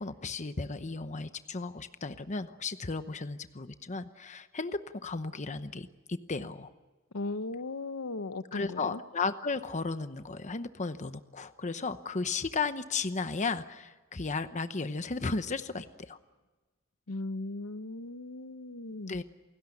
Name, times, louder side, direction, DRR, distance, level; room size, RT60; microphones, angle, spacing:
voice 1, 0.0-6.7 8.5-16.2 19.1-19.2, left 4 dB, 35° left, 11 dB, 0.9 m, -35 dB
voice 2, 7.1-9.0 17.1-19.1, left 2 dB, 85° left, 13 dB, 1.0 m, -37 dB
29.0 x 17.0 x 9.9 m, 1.2 s
head